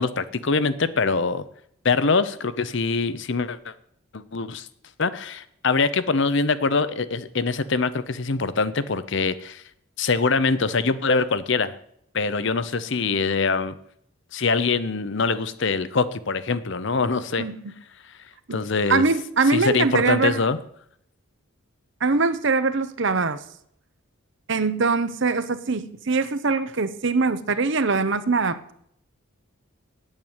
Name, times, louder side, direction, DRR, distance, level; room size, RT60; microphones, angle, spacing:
voice 1, 0.0-1.4 1.8-3.7 4.1-4.7 5.0-9.6 10.0-11.8 12.1-13.7 14.3-17.4 18.5-19.0 19.5-20.6, left 4 dB, 55° left, 14 dB, 0.7 m, -23 dB
voice 2, 17.4-17.7 18.5-20.4 22.0-23.4 24.5-28.6, right 4 dB, 55° right, 13 dB, 0.8 m, -23 dB
8.9 x 7.9 x 8.8 m, 0.70 s
head